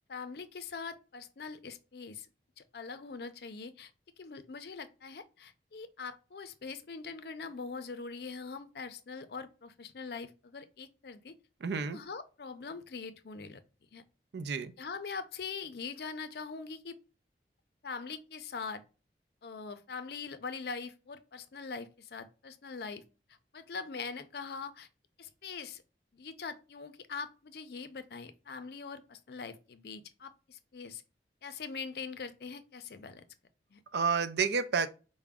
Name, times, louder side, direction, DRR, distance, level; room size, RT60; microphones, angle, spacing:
voice 1, 0.1-2.3 2.6-3.9 4.2-11.3 11.8-13.6 13.9-14.0 14.8-17.0 17.8-18.8 19.4-23.0 23.5-24.9 25.2-25.8 26.1-31.0 31.4-33.2 33.7-33.8, left 5 dB, 65° left, 0.5 m, -42 dB
voice 2, 11.6-12.0 14.3-14.7 33.9-34.9, right 5 dB, 75° right, 0.4 m, -30 dB
4.8 x 2.1 x 3.5 m
head